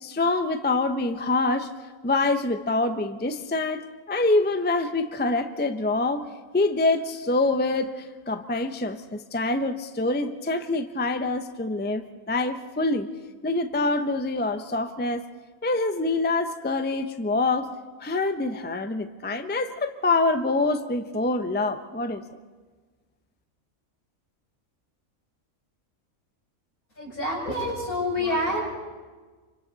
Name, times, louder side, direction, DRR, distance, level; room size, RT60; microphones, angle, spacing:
voice 1, 0.0-1.7 2.0-6.3 6.5-13.1 13.4-15.2 15.6-17.7 18.0-22.3, left 2 dB, 10° left, 9 dB, 0.6 m, -25 dB
voice 2, 27.0-28.6, left 1 dB, 80° left, -4 dB, 7.0 m, -27 dB
27.5 x 25.0 x 4.1 m, 1.4 s
omnidirectional pair, 1.5 m